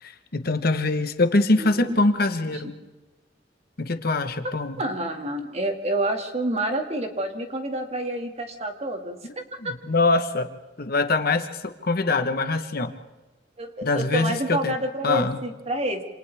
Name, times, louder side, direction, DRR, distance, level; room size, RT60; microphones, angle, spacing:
voice 1, 0.0-2.7 3.8-4.8 9.6-10.5 10.8-12.9 13.8-14.7 15.0-15.4, left 2 dB, 55° left, 8 dB, 1.3 m, -23 dB
voice 2, 1.3-2.0 2.4-2.7 4.8-9.7 13.6-16.0, right 1 dB, 35° right, 4 dB, 2.2 m, -29 dB
28.0 x 27.5 x 3.6 m, 1.2 s
head